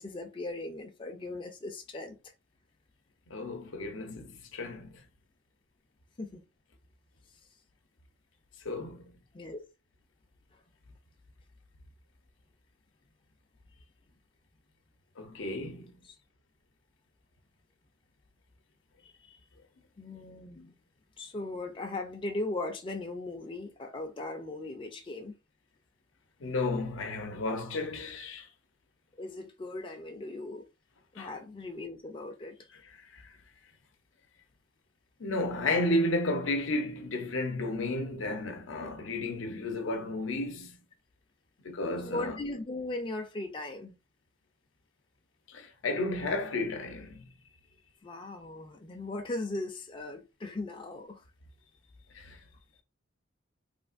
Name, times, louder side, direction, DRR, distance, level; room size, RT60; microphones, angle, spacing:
voice 1, 0.0-2.2 6.2-6.4 9.3-9.6 16.0-16.2 19.0-19.4 20.0-20.7 21.2-25.3 29.2-30.6 31.1-32.6 42.0-44.0 48.0-51.2, left 2 dB, 25° left, 0.4 m, -38 dB
voice 2, 3.3-5.0 8.6-9.1 15.2-15.9 26.4-28.5 31.2-31.3 33.1-33.3 35.2-40.8 41.6-42.4 45.5-47.3 52.1-52.4, left 2 dB, 85° left, 0.6 m, -32 dB
3.3 x 2.4 x 2.5 m
head